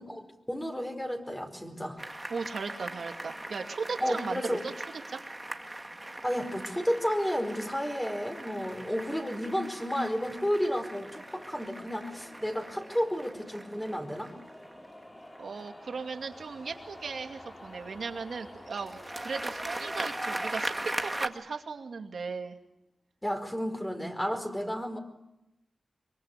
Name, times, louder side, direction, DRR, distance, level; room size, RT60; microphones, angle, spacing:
voice 1, 0.0-2.0 4.0-4.6 6.2-14.3 23.2-25.0, equal, 10° left, 4 dB, 4.8 m, -32 dB
sound 1, 2.0-16.0 18.7-21.3, right 1 dB, 15° right, 1.8 m, -40 dB
voice 2, 2.3-4.7 5.1-5.2 15.4-20.7 21.0-22.6, right 5 dB, 80° right, 5 dB, 2.5 m, -37 dB
sound 2, 7.6-21.6, left 1 dB, 30° left, 6.1 m, -52 dB
24.5 x 24.0 x 8.5 m, 0.89 s
wide cardioid pair, 70°, 0 cm